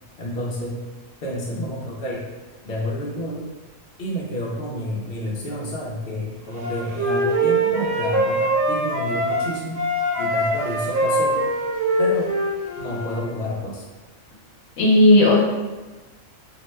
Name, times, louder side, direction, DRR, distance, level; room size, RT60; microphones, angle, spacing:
voice 1, 0.2-0.8 1.2-2.3 2.6-3.5 4.0-9.8 10.2-11.5 12.0-12.3 12.8-13.8, equal, 55° left, -4 dB, 0.8 m, -30 dB
Wind instrument woodwind instrument, 6.6-9.5 9.8-13.3, right 1 dB, 75° right, 1.0 m, -23 dB
voice 2, 14.8-15.4, left 1 dB, 80° left, -3 dB, 1.1 m, -14 dB
2.8 x 2.1 x 3.1 m, 1.2 s
omnidirectional pair, 1.3 m